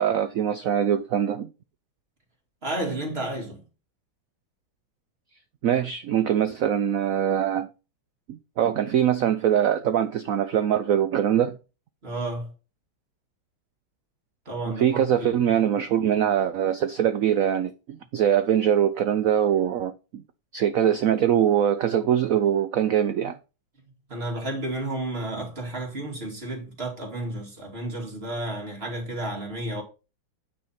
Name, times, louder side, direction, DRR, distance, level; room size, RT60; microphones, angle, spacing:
voice 1, 0.0-1.5 5.6-7.7 8.3-11.6 14.8-20.2 20.5-23.4, right 9 dB, 80° right, 0.7 m, -23 dB
voice 2, 2.6-3.6 12.0-12.5 14.5-15.3 24.1-29.8, right 1 dB, 30° right, 2.7 m, -32 dB
9.3 x 4.4 x 5.7 m
omnidirectional pair, 2.1 m